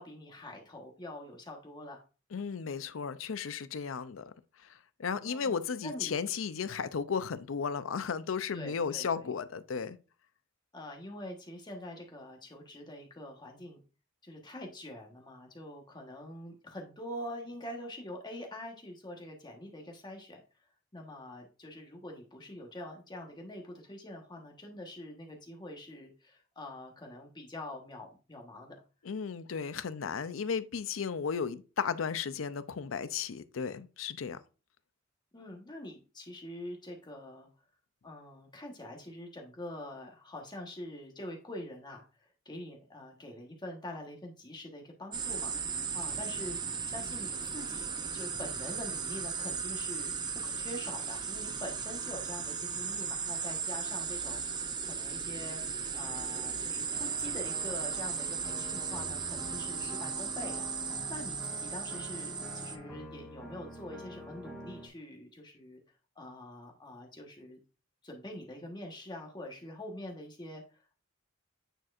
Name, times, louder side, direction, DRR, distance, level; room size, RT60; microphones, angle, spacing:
voice 1, 0.0-2.0 5.2-6.1 8.5-9.3 10.7-13.8 14.2-20.4 20.9-28.7 35.3-37.5 38.0-45.5 45.9-46.6 46.9-55.6 55.9-60.7 61.1-65.8 66.1-67.6 68.0-71.0, left 1 dB, 20° left, 1.2 m, -45 dB
voice 2, 2.3-4.2 5.0-10.0 29.0-34.4, left 6 dB, 90° left, 0.5 m, -34 dB
sound 1, 45.1-62.8, right 6 dB, 20° right, 0.5 m, -36 dB
sound 2, 56.9-64.9, left 1 dB, 5° left, 1.9 m, -47 dB
9.0 x 4.3 x 2.5 m
head